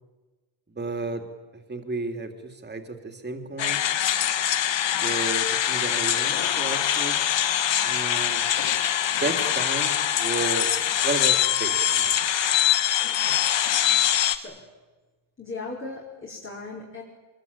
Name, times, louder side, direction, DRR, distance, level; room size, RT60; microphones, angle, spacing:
voice 1, 0.7-1.2 1.5-3.8 5.0-7.2 7.8-8.4 9.2-10.7 11.0-12.1, right 3 dB, 20° right, 6 dB, 3.6 m, -32 dB
sound 1, 3.6-14.4, left 11 dB, 65° left, 1.7 m, -23 dB
voice 2, 14.2-14.5 15.4-17.0, left 3 dB, 25° left, -2 dB, 5.5 m, -37 dB
25.0 x 23.0 x 9.0 m, 1.3 s
cardioid pair, 120°, 47 cm